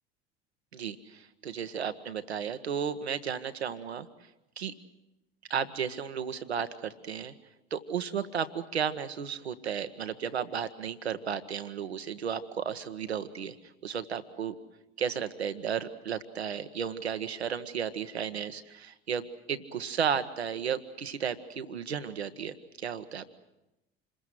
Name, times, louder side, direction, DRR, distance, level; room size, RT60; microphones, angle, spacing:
voice 1, 0.7-4.1 4.6-4.7 5.5-7.3 7.7-13.5 13.8-14.5 15.0-23.3, right 7 dB, 80° right, 10 dB, 1.3 m, -34 dB
27.5 x 21.0 x 7.6 m, 0.95 s
figure-of-eight pair, 65°, 32 cm